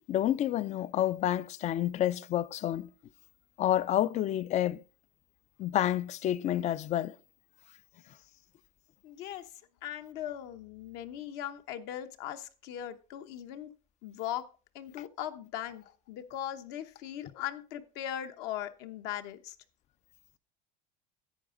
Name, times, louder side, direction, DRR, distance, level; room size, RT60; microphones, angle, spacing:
voice 1, 0.1-2.9 3.6-4.8 5.6-7.2, left 12 dB, 40° left, 0.4 m, -29 dB
voice 2, 9.0-9.5 9.8-13.7 14.0-14.5 14.7-19.5, left 11 dB, 70° left, 1.0 m, -39 dB
11.0 x 7.8 x 3.8 m
supercardioid pair, 120°, 18 cm